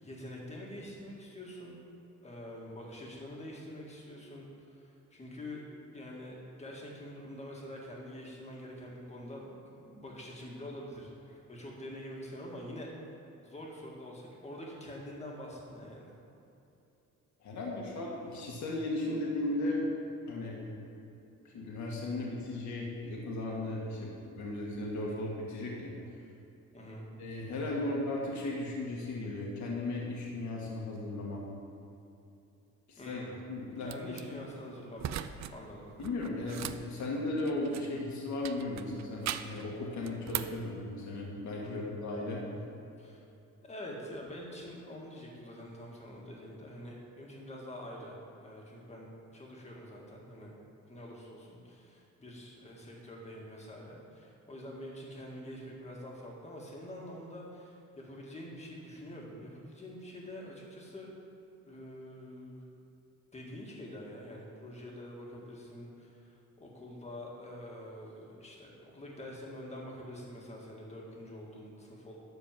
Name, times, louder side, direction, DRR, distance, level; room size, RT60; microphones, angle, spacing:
voice 1, 0.0-1.8 2.2-5.7 5.9-13.2 13.4-16.2 26.7-27.1 33.0-33.4 33.8-36.0 41.6-41.9 43.0-43.2 43.6-49.1 49.3-50.5 50.8-61.1 61.6-62.7 63.3-72.2, left 1 dB, 20° left, -2 dB, 1.9 m, -46 dB
voice 2, 17.4-19.8 20.3-20.9 21.4-25.9 27.2-31.4 32.9-33.2 33.5-34.5 36.0-42.4, left 2 dB, 65° left, -3 dB, 1.8 m, -36 dB
sound 1, 33.9-34.2 35.0-35.5 35.8-38.0 38.4-39.6 40.0-40.6, right 11 dB, 60° right, 0.5 m, -39 dB
12.5 x 4.6 x 7.3 m, 2.8 s
cardioid pair, 150°, 31 cm